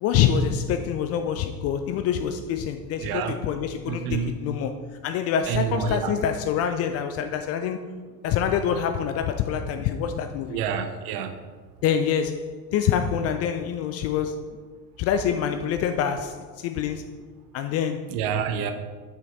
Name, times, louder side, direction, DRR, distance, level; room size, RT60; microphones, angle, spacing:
voice 1, 0.0-7.8 8.2-10.6 11.8-14.4 15.0-17.0 17.5-18.1, left 8 dB, 35° left, 0.4 m, -26 dB
voice 2, 3.0-3.4 3.9-4.4 5.5-6.1 10.5-11.3 18.1-18.7, right 7 dB, 45° right, 0.9 m, -28 dB
7.5 x 6.2 x 3.9 m
figure-of-eight pair, 65°, 48 cm